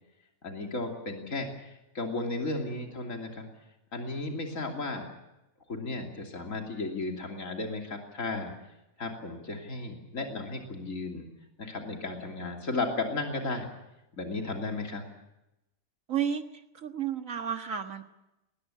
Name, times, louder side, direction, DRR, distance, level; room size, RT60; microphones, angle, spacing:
voice 1, 0.4-1.5 1.9-3.5 3.9-5.1 5.7-8.5 9.0-11.3 11.6-13.7 14.1-15.0, left 3 dB, 65° left, 2 dB, 3.3 m, -34 dB
voice 2, 16.1-16.4 16.8-18.1, right 8 dB, 65° right, 7 dB, 1.9 m, -31 dB
21.0 x 19.5 x 9.9 m, 0.92 s
omnidirectional pair, 1.5 m